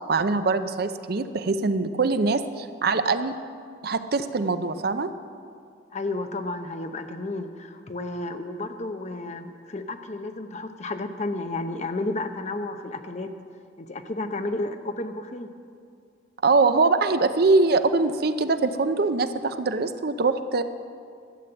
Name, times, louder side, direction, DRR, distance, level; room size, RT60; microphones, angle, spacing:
voice 1, 0.1-3.4 3.8-5.1 16.4-20.6, right 3 dB, 55° right, 10 dB, 0.6 m, -23 dB
voice 2, 5.9-13.3 13.8-15.5, left 2 dB, 40° left, 7 dB, 0.7 m, -32 dB
12.5 x 8.5 x 7.9 m, 2.2 s
head